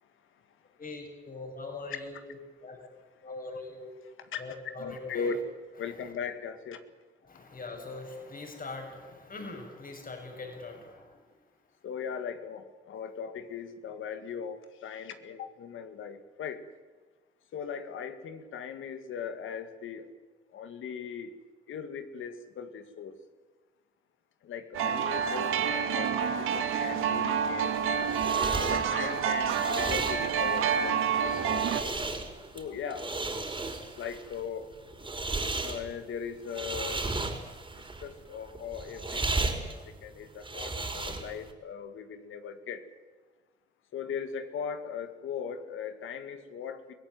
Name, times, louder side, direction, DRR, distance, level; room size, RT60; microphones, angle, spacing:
voice 1, 0.8-2.8 3.2-3.9 4.3-5.3 7.2-11.2, left 3 dB, 45° left, 3 dB, 6.8 m, -42 dB
voice 2, 4.3-5.4 5.8-6.8 11.8-16.6 17.5-20.0 20.5-21.3 21.7-23.1 24.4-27.7 28.7-31.7 32.5-33.1 34.0-34.7 35.6-37.0 38.0-39.7 40.0-42.8 43.9-46.9, left 7 dB, 80° left, 9 dB, 2.1 m, -39 dB
sound 1, 24.7-31.8, right 7 dB, 90° right, 1.9 m, -28 dB
sound 2, 27.6-41.5, right 2 dB, 25° right, 4.6 m, -35 dB
23.5 x 17.0 x 9.3 m, 1.3 s
cardioid pair, 70°, 20 cm